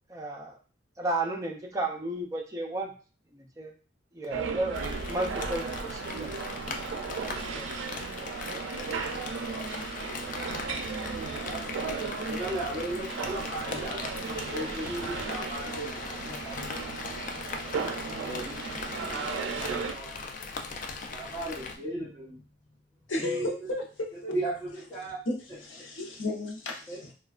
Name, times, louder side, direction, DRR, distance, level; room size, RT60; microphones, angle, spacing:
voice 1, 0.1-0.6 1.0-2.9 3.3-3.7 4.1-4.8 5.1-6.3 7.6-7.9, right 2 dB, 15° right, 1 dB, 0.4 m, -33 dB
sound 1, 4.3-19.9, right 5 dB, 75° right, 0.4 m, -35 dB
Rain, 4.7-21.8, left 4 dB, 45° left, 0.3 m, -39 dB
voice 2, 8.2-9.1 11.0-16.8 18.2-18.6 19.1-20.2 21.1-22.4 23.1-23.5 24.3-25.2 26.9-27.0, right 1 dB, 15° left, -9 dB, 0.9 m, -37 dB
voice 3, 23.1-24.4 25.3-27.1, left 2 dB, 85° left, 1 dB, 0.7 m, -34 dB
3.1 x 2.2 x 2.4 m, 0.36 s
head